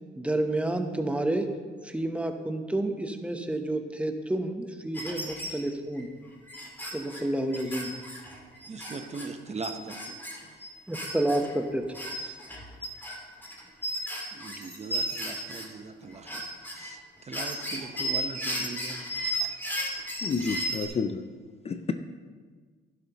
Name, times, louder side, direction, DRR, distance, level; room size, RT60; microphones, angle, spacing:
voice 1, 0.2-1.4 1.8-6.1 6.9-7.9 10.9-11.8 12.2-12.4, right 1 dB, 5° right, 1.0 m, -29 dB
sound 1, 4.9-5.6 6.0-6.1 6.5-9.3 9.6-11.5 11.9-15.7 16.0-16.9 17.3-20.9, right 1 dB, 10° left, 2.6 m, -34 dB
voice 2, 8.7-10.6 14.3-19.1, right 4 dB, 35° right, 0.9 m, -40 dB
voice 3, 20.2-21.2 21.7-21.9, left 5 dB, 30° left, 0.5 m, -29 dB
12.0 x 11.0 x 3.0 m
cardioid pair, 90°, 20 cm